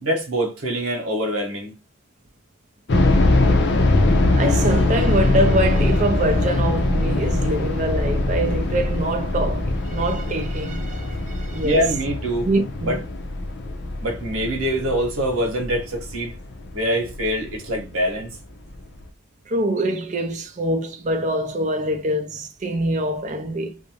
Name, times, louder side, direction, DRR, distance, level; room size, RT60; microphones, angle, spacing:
voice 1, 0.0-1.7 11.6-12.5 12.8-13.0 14.0-16.3 16.7-18.4, equal, 85° right, 1.0 m, -24 dB
sound 1, 2.9-17.8 18.0-18.1 18.7-19.0, left 2 dB, 55° left, 0.5 m, -22 dB
voice 2, 4.3-11.8 12.4-13.0 19.5-23.8, right 1 dB, 35° right, 0.4 m, -24 dB
2.5 x 2.1 x 2.9 m
head